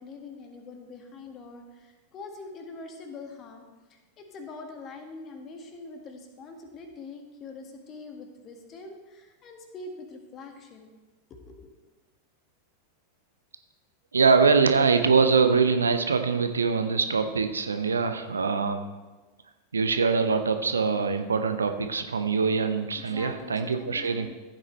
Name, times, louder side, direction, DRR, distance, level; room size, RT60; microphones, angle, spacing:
voice 1, 0.0-10.9 11.3-11.7 22.9-24.3, left 3 dB, 30° left, 4 dB, 1.7 m, -44 dB
voice 2, 14.1-18.8 19.7-24.3, right 5 dB, 75° right, 8 dB, 0.8 m, -23 dB
14.5 x 8.8 x 3.2 m, 1.2 s
figure-of-eight pair, 90°, 0 cm